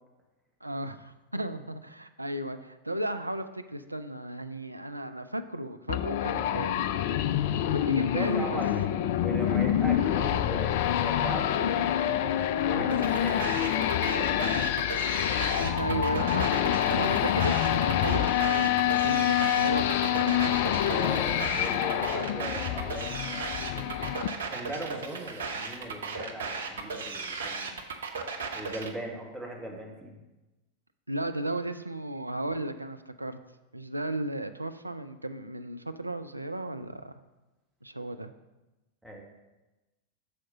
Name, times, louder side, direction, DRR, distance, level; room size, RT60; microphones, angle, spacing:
voice 1, 0.6-6.8 7.7-8.6 12.7-13.1 15.6-20.6 31.1-33.4 33.7-37.1 37.8-38.3, right 1 dB, 85° right, 9 dB, 0.4 m, -35 dB
sound 1, 5.9-24.3, left 11 dB, 50° left, 0.3 m, -27 dB
voice 2, 8.1-12.0 12.3-14.2 20.9-27.7 28.5-30.1 39.0-39.2, right 1 dB, 5° right, -1 dB, 1.6 m, -39 dB
sound 2, 12.9-28.9, right 4 dB, 65° right, 0.7 m, -36 dB
6.4 x 5.0 x 5.6 m, 1.1 s
figure-of-eight pair, 90°, 0 cm